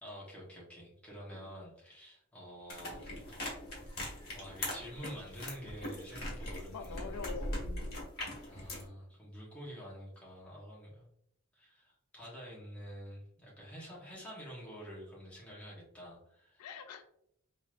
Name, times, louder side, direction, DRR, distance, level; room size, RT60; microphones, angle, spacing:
voice 1, 0.0-3.2 4.0-7.2 8.5-11.1 11.5-16.7, equal, 5° left, -6 dB, 1.2 m, -48 dB
sound 1, 2.7-8.9, left 1 dB, 45° left, 1.4 m, -41 dB
voice 2, 6.7-8.1 16.6-17.0, left 5 dB, 90° left, 7 dB, 0.4 m, -45 dB
3.9 x 3.0 x 2.5 m, 0.73 s
head